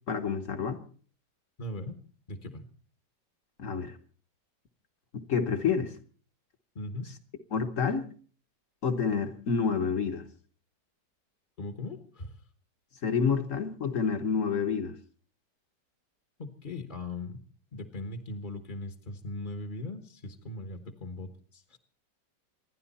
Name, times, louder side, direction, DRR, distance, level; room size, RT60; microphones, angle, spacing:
voice 1, 0.1-0.8 3.6-4.0 5.1-5.9 7.5-8.1 8.8-10.2 13.0-14.9, left 6 dB, 45° left, 1.5 m, -28 dB
voice 2, 1.6-2.0 2.3-2.7 6.7-7.1 11.6-12.4 16.4-17.4 17.7-21.8, left 2 dB, 30° left, 1.2 m, -39 dB
27.0 x 11.0 x 4.2 m
omnidirectional pair, 1.9 m